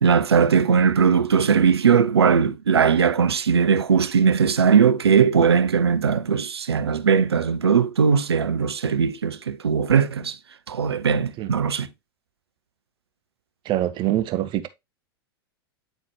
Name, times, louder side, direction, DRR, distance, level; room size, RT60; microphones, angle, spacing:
voice 1, 0.0-10.4 10.7-11.9, right 6 dB, 80° right, 0.6 m, -19 dB
voice 2, 13.6-14.7, right 13 dB, 35° right, 0.9 m, -24 dB
9.0 x 4.1 x 2.9 m
figure-of-eight pair, 90°, 13 cm